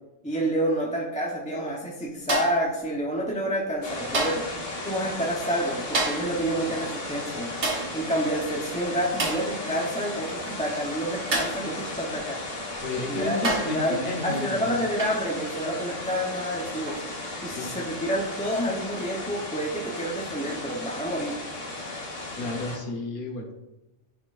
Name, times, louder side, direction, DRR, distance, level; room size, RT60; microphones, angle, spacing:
voice 1, 0.2-4.4 4.8-7.5 7.9-12.4 13.1-17.0 17.4-21.4, equal, 5° left, -4 dB, 0.7 m, -29 dB
sound 1, 2.3-2.7 4.1-4.5 5.9-6.4 7.6-8.0 9.2-9.5 11.3-11.7 12.7-12.8 13.4-13.8 15.0-15.3 16.9-17.1, right 2 dB, 65° right, 1.6 m, -28 dB
sound 2, 3.8-22.8, left 2 dB, 70° left, 1.9 m, -35 dB
voice 2, 12.8-14.7 17.4-17.8 22.3-23.5, left 3 dB, 45° left, 0 dB, 1.3 m, -32 dB
10.0 x 4.3 x 2.5 m, 0.99 s
omnidirectional pair, 1.3 m